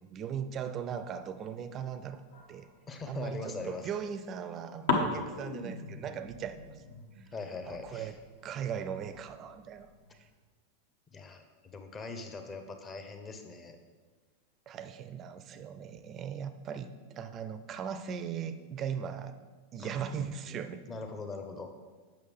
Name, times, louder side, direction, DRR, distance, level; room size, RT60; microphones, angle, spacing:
voice 1, 0.0-2.2 2.5-2.7 3.1-6.8 7.2-7.3 7.7-8.2 8.4-10.3 14.7-19.4 19.7-20.8, right 8 dB, 30° right, 11 dB, 0.4 m, -38 dB
sound 1, 0.9-3.1 3.6-4.5 4.9-10.4, left 3 dB, 60° left, 1.0 m, -38 dB
voice 2, 2.9-3.9 7.3-8.1 11.1-13.8 19.8-20.2 20.9-21.7, left 3 dB, 20° left, 6 dB, 0.8 m, -41 dB
8.2 x 6.2 x 3.5 m, 1.4 s
figure-of-eight pair, 90°, 0 cm